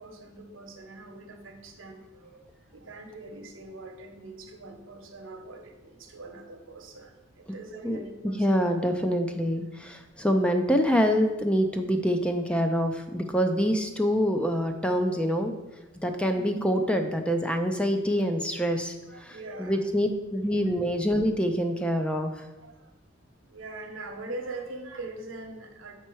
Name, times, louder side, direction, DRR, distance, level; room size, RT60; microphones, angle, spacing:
voice 1, 0.0-2.4 2.7-8.5 16.3-16.6 19.1-19.8 22.6-22.9 23.4-25.9, right 2 dB, 80° right, 3 dB, 1.0 m, -42 dB
voice 2, 7.8-15.5 16.0-18.9 19.2-22.3, equal, 5° left, 5 dB, 0.4 m, -26 dB
7.2 x 4.4 x 4.6 m, 1.1 s
head